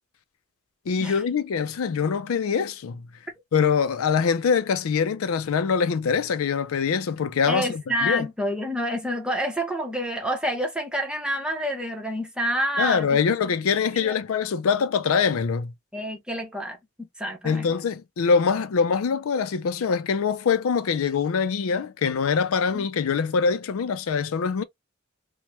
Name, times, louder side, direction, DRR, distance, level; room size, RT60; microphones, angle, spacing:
voice 1, 0.9-3.0 3.5-8.3 12.8-15.7 17.4-24.6, left 6 dB, 80° left, 0.4 m, -24 dB
voice 2, 7.5-13.2 14.0-14.1 15.9-17.7 22.7-22.9, equal, 5° right, 0.7 m, -28 dB
3.2 x 2.1 x 2.9 m
head